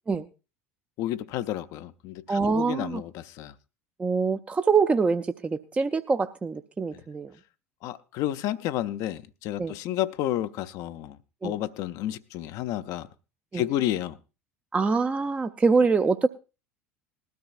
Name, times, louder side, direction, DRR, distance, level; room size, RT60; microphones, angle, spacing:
voice 1, 1.0-3.5 7.8-11.2 11.4-13.1 13.5-14.2, left 13 dB, 50° left, 0.6 m, -31 dB
voice 2, 2.3-3.0 4.0-7.3 9.6-9.7 11.4-11.5 13.5-13.6 14.7-16.3, right 4 dB, 15° right, 0.6 m, -24 dB
19.5 x 13.0 x 2.4 m
figure-of-eight pair, 70°, 8 cm